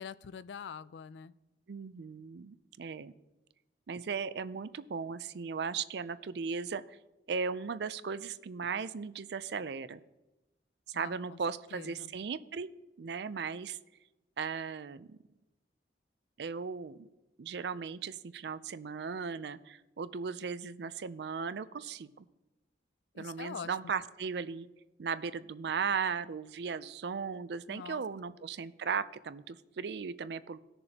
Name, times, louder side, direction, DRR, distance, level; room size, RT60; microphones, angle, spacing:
voice 1, 0.0-1.3 10.9-11.4 11.7-12.1 23.1-23.8 27.7-28.3, left 6 dB, 70° left, 17 dB, 0.4 m, -45 dB
voice 2, 1.7-3.1 3.9-7.0 7.3-10.0 10.9-12.7 13.0-13.8 14.4-15.2 16.4-17.1 17.4-22.3 23.2-24.7 25.0-30.6, right 5 dB, 60° right, 14 dB, 0.4 m, -37 dB
18.0 x 6.8 x 2.8 m, 1.0 s
head